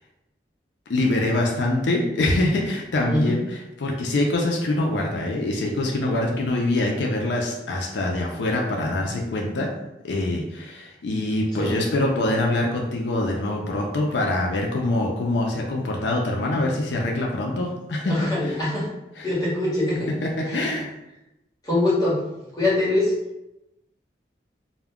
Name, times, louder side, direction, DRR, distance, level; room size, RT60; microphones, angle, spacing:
voice 1, 0.9-9.7 10.0-18.6 19.2-19.3 20.1-20.9, left 2 dB, 85° left, 0 dB, 0.4 m, -24 dB
voice 2, 18.0-18.9 19.2-20.1 20.5-20.8 21.6-22.2 22.6-23.1, left 2 dB, 20° left, -8 dB, 1.1 m, -23 dB
2.2 x 2.1 x 3.5 m, 0.92 s
head